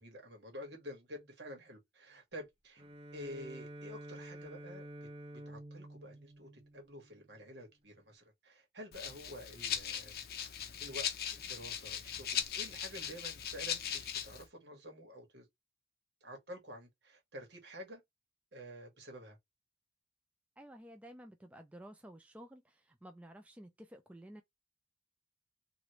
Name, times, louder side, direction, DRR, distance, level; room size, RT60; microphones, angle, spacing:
voice 1, 0.0-2.8 3.1-4.9 5.3-10.1 10.8-15.5 16.2-18.0 18.5-19.4, equal, 75° right, 1.5 m, -49 dB
Bowed string instrument, 2.8-7.4, right 1 dB, 30° right, 0.7 m, -50 dB
Rattle (instrument), 8.9-14.4, left 9 dB, 55° left, 0.5 m, -39 dB
voice 2, 20.6-24.4, equal, 10° right, 0.3 m, -53 dB
3.0 x 2.5 x 3.0 m
head